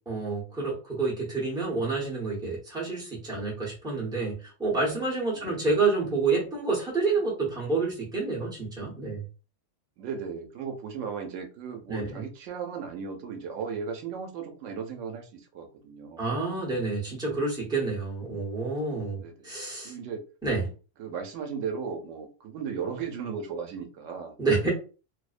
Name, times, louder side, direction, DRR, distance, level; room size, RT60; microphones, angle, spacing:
voice 1, 0.1-4.3 4.6-9.2 11.9-12.2 16.2-19.9 20.4-20.6 24.4-24.7, right 3 dB, 5° right, -5 dB, 0.8 m, -28 dB
voice 2, 5.3-5.7 10.0-16.2 19.2-19.5 19.8-20.2 21.0-24.3, right 6 dB, 90° right, 4 dB, 0.9 m, -36 dB
2.6 x 2.0 x 2.4 m, 0.35 s
omnidirectional pair, 1.3 m